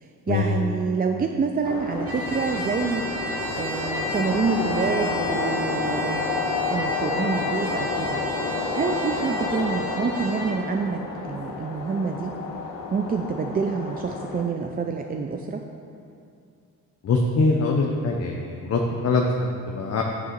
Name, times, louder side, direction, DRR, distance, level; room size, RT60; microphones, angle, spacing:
voice 1, 0.0-3.0 3.6-6.2 6.7-8.2 8.5-12.3 12.9-15.7, right 5 dB, 30° right, 3 dB, 0.5 m, -27 dB
sound 1, 1.6-14.4, left 3 dB, 70° left, 1.1 m, -30 dB
Trumpet, 2.0-10.6, equal, 45° right, 1.5 m, -34 dB
voice 2, 17.0-20.0, left 3 dB, 50° left, 0 dB, 0.8 m, -23 dB
9.7 x 3.7 x 6.7 m, 2.4 s
cardioid pair, 85°, 33 cm